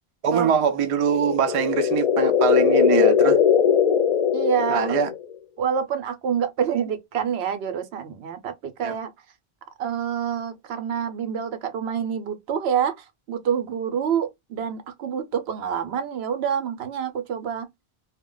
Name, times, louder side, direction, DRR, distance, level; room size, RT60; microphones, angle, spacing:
voice 1, 0.2-3.4 4.7-5.1 8.8-9.0, right 7 dB, 45° right, 0.4 m, -23 dB
sound 1, 1.1-5.3, left 7 dB, 45° left, 0.6 m, -20 dB
voice 2, 4.3-5.0 5.6-9.1 9.8-17.7, right 8 dB, 80° right, 0.9 m, -27 dB
2.2 x 2.1 x 3.7 m
omnidirectional pair, 1.1 m